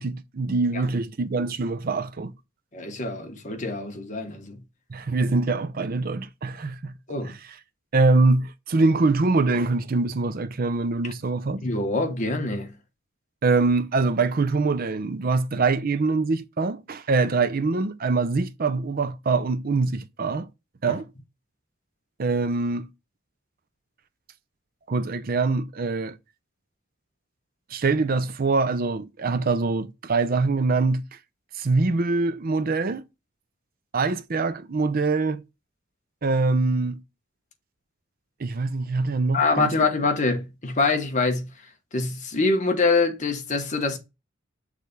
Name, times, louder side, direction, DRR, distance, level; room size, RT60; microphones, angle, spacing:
voice 1, 0.0-2.3 4.9-6.9 7.2-7.3 7.9-11.6 13.4-20.5 20.8-21.1 22.2-22.9 24.9-26.2 27.7-31.0 31.6-33.0 33.9-35.4 36.2-37.0 38.4-39.7, right 3 dB, 45° right, 0.5 m, -24 dB
voice 2, 2.7-4.6 7.1-7.4 11.6-12.7 20.9-21.0 39.3-41.5 41.9-44.0, left 3 dB, 35° left, 1.2 m, -25 dB
6.5 x 3.4 x 5.3 m
head